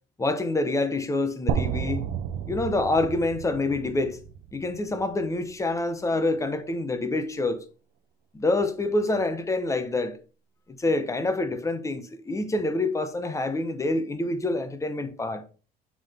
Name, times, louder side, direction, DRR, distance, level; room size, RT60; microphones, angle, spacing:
voice 1, 0.2-2.0 2.5-4.2 4.5-7.6 8.3-10.2 10.8-15.4, left 2 dB, 20° left, 0.8 m, -26 dB
sound 1, 1.5-5.5, right 8 dB, 85° right, 0.5 m, -32 dB
7.2 x 3.7 x 3.5 m
cardioid pair, 110°, 17 cm